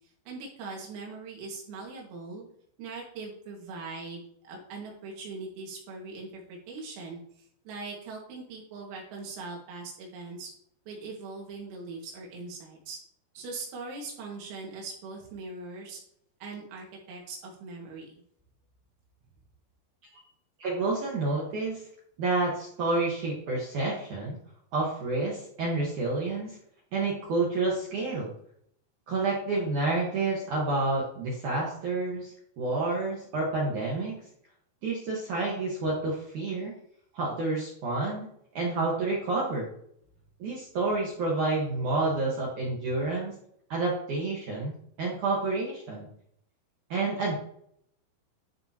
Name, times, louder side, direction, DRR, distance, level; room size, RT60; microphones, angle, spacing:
voice 1, 0.3-2.4 2.8-7.2 7.7-10.5 10.9-13.0 13.3-16.0 16.4-18.1, right 3 dB, 90° right, -1 dB, 4.8 m, -41 dB
voice 2, 20.6-21.8 22.2-24.4 24.7-26.6 26.9-28.3 29.1-34.2 34.8-36.7 37.1-38.3 38.5-39.7 40.4-43.3 43.7-46.1 46.9-47.3, right 3 dB, 70° right, -4 dB, 1.9 m, -29 dB
12.5 x 5.3 x 3.0 m, 0.69 s
omnidirectional pair, 5.9 m